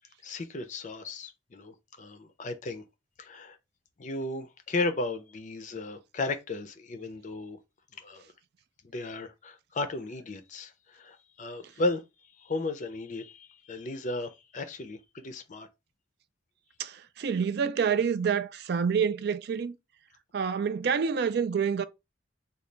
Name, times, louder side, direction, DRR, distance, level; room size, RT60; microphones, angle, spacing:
voice 1, 0.2-2.8 3.2-3.6 4.0-7.6 7.9-8.2 8.8-12.0 12.4-15.7, left 2 dB, 40° left, 0.5 m, -35 dB
voice 2, 16.8-19.8 20.3-21.8, right 6 dB, 55° right, 0.3 m, -27 dB
3.9 x 2.3 x 3.2 m
head